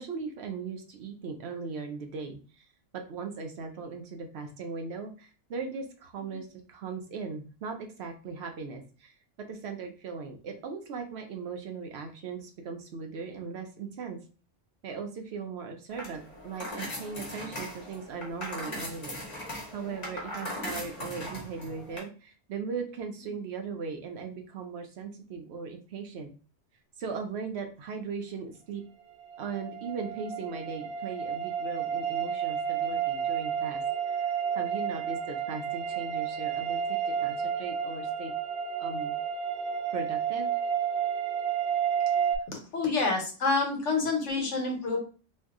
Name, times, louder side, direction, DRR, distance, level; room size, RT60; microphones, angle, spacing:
voice 1, 0.0-2.6 2.9-9.1 9.5-14.2 14.8-26.3 27.0-28.8 29.4-33.8 34.1-34.3 34.5-38.3 38.8-39.1 39.9-40.5, right 5 dB, 65° right, 4 dB, 0.8 m, -38 dB
sound 1, 15.9-22.0, left 1 dB, 35° left, 1.1 m, -39 dB
sound 2, 29.2-42.4, right 8 dB, 85° right, 1.0 m, -31 dB
voice 2, 42.5-45.0, left 3 dB, 75° left, 2 dB, 1.2 m, -28 dB
2.7 x 2.3 x 3.5 m, 0.36 s
omnidirectional pair, 1.3 m